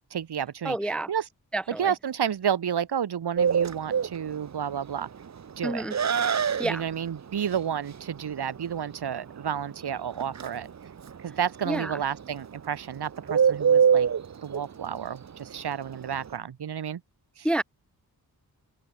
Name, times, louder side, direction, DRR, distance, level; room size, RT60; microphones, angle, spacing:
voice 1, 0.1-1.2 1.7-5.1 5.6-5.9 6.6-10.7 11.2-14.1 14.4-17.0 17.4-17.5, right 8 dB, 85° right, 3.2 m, -31 dB
voice 2, 0.6-1.1 1.5-1.9 5.6-5.9 6.6-6.8 11.7-12.0 17.4-17.6, right 1 dB, 5° left, 0.5 m, -28 dB
Bird, 3.4-16.4, right 7 dB, 45° right, 1.0 m, -27 dB
open air
wide cardioid pair, 130°, 38 cm